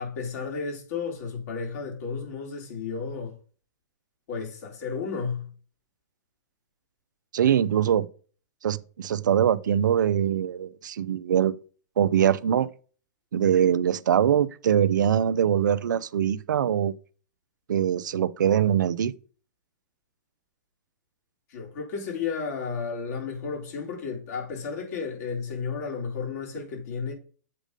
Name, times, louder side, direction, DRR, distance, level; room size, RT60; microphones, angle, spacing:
voice 1, 0.0-3.4 4.3-5.5 21.5-27.1, left 5 dB, 55° left, 3.6 m, -33 dB
voice 2, 7.3-8.1 8.6-11.6 12.0-12.7 13.3-16.9 17.7-19.1, right 9 dB, 75° right, 0.5 m, -23 dB
7.5 x 5.0 x 5.1 m
hypercardioid pair, 125°, 10 cm